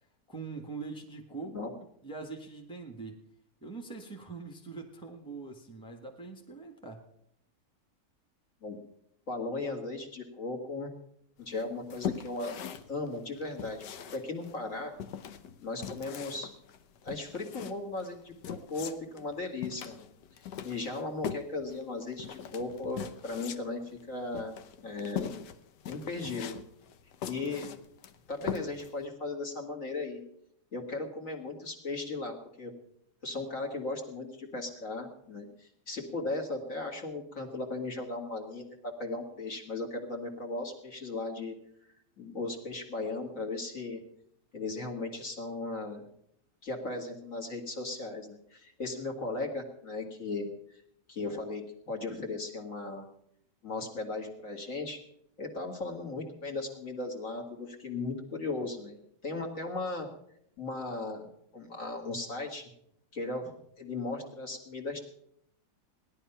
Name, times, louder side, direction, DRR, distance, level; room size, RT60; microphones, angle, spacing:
voice 1, 0.3-1.7 2.0-3.2 3.6-7.0, right 4 dB, 5° left, 2 dB, 1.5 m, -43 dB
voice 2, 9.3-10.9 11.4-12.6 12.9-14.9 15.6-16.5 17.0-20.1 20.6-24.6 24.8-25.4 25.9-26.6 27.3-27.7 28.3-30.2 30.7-32.7 33.2-41.6 42.2-44.0 44.5-46.1 46.6-50.8 51.1-53.1 53.6-55.0 55.4-60.1 60.6-62.6 63.1-63.5 63.8-65.0, left 3 dB, 50° left, 2 dB, 2.3 m, -37 dB
sound 1, 11.5-29.0, left 8 dB, 80° left, 1.5 m, -41 dB
17.0 x 11.0 x 5.7 m, 0.74 s
omnidirectional pair, 1.8 m